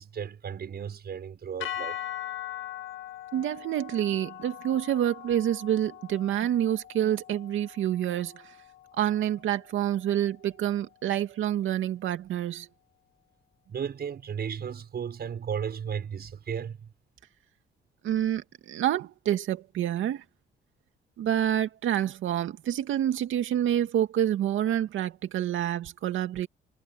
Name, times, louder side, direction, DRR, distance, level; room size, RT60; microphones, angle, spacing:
voice 1, 0.0-2.0 13.7-16.9, right 7 dB, 55° right, 6.1 m, -35 dB
sound 1, 1.6-9.9, left 12 dB, 75° left, 1.9 m, -41 dB
voice 2, 3.3-8.5 9.0-12.7 18.0-20.2 21.2-26.5, right 11 dB, 80° right, 2.3 m, -28 dB
cardioid pair, 90°, 20 cm